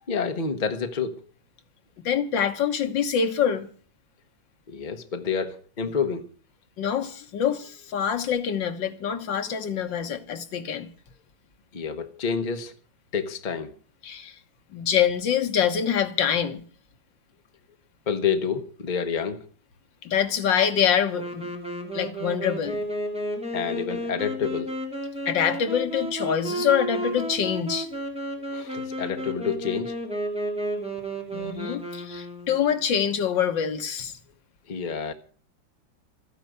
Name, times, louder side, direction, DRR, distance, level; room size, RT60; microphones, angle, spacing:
voice 1, 0.1-1.2 4.7-6.3 11.7-12.7 13.1-13.7 18.1-19.4 23.5-24.8 28.5-30.0 34.7-35.1, left 6 dB, 30° left, 1.1 m, -28 dB
voice 2, 2.1-3.7 6.8-10.9 14.0-14.4 14.7-16.6 20.0-21.5 21.9-22.8 25.3-27.9 31.3-34.2, left 8 dB, 70° left, 1.9 m, -25 dB
Wind instrument woodwind instrument, 21.1-32.8, right 1 dB, 5° right, 2.8 m, -32 dB
13.5 x 10.0 x 7.9 m
omnidirectional pair, 2.1 m